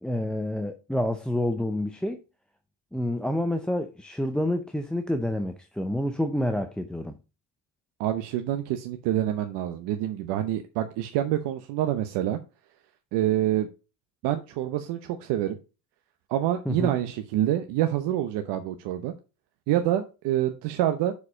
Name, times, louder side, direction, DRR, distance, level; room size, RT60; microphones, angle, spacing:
voice 1, 0.0-2.2 2.9-7.2 16.7-17.0, left 1 dB, ahead, 0.4 m, -28 dB
voice 2, 8.0-12.4 13.1-13.7 14.2-15.6 16.3-19.1 19.7-21.1, right 12 dB, 80° right, 0.9 m, -27 dB
6.6 x 4.8 x 4.9 m
cardioid pair, 115°, 41 cm